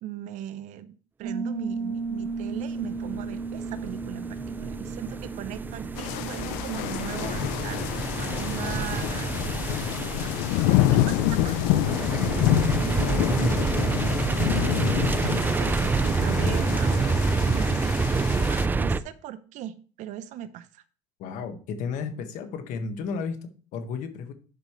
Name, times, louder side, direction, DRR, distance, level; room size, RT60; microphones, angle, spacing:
voice 1, 0.0-7.9 8.2-9.7 10.2-13.8 14.5-20.8, right 11 dB, 60° right, 14 dB, 0.7 m, -39 dB
Piano, 1.2-9.7, right 4 dB, 80° right, 2.0 m, -36 dB
sound 1, 2.5-19.0, right 4 dB, 15° right, 0.4 m, -28 dB
sound 2, 6.0-18.7, left 14 dB, 85° left, 0.5 m, -27 dB
voice 2, 21.2-24.3, left 5 dB, 65° left, 7 dB, 1.5 m, -33 dB
11.5 x 5.2 x 3.1 m, 0.40 s
cardioid pair, 130°, 14 cm